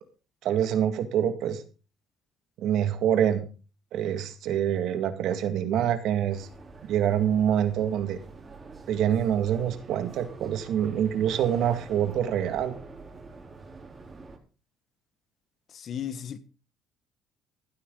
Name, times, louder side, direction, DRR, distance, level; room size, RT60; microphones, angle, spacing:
voice 1, 0.4-1.6 2.6-3.4 3.9-6.5 6.9-8.2 8.9-12.8, right 9 dB, 70° right, 2.0 m, -26 dB
sound 1, 6.3-14.4, right 3 dB, 30° right, 3.6 m, -46 dB
voice 2, 15.7-16.4, left 9 dB, 50° left, 1.4 m, -35 dB
15.5 x 12.5 x 3.9 m
cardioid pair, 95°, 0 cm